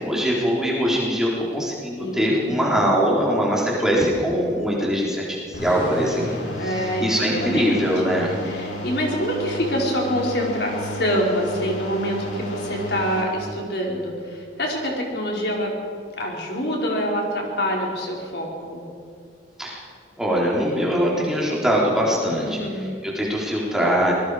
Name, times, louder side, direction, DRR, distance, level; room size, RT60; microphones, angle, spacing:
voice 1, 0.0-6.3 6.6-8.3 19.6-19.8 20.2-24.1, equal, 5° right, -5 dB, 3.8 m, -22 dB
voice 2, 2.0-2.8 6.6-7.8 8.4-15.7 16.2-18.8 22.4-22.9, equal, 60° left, -1 dB, 4.5 m, -26 dB
sound 1, 5.5-13.2, equal, 85° left, 7.1 m, -32 dB
25.5 x 21.0 x 5.0 m, 2.2 s
head